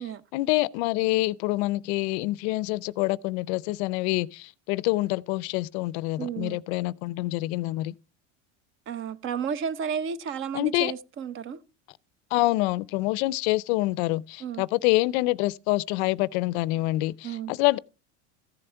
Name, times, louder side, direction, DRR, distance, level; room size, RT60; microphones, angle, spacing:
voice 1, 0.3-7.9 10.5-10.9 12.3-17.8, left 19 dB, 65° left, 0.5 m, -26 dB
voice 2, 6.2-6.6 8.9-11.6 14.4-14.6 17.2-17.5, right 7 dB, 35° right, 0.7 m, -32 dB
14.0 x 7.7 x 4.4 m
supercardioid pair, 140°, 35 cm